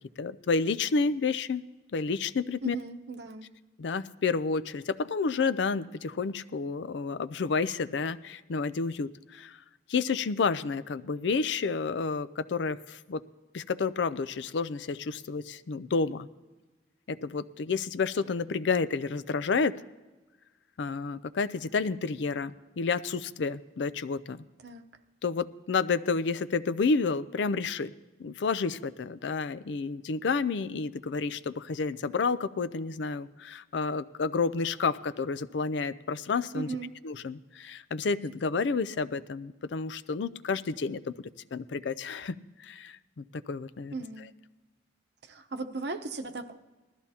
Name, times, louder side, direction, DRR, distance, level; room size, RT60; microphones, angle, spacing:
voice 1, 0.2-2.8 3.8-9.6 9.9-13.2 13.5-16.3 17.1-19.8 20.8-24.4 25.2-27.9 28.2-36.7 37.0-44.3, left 4 dB, 75° left, 14 dB, 0.5 m, -30 dB
voice 2, 2.6-3.5 24.6-24.8 36.5-36.9 43.9-44.3 45.3-46.6, right 3 dB, 65° right, 6 dB, 0.8 m, -37 dB
19.5 x 13.5 x 2.8 m, 1.2 s
head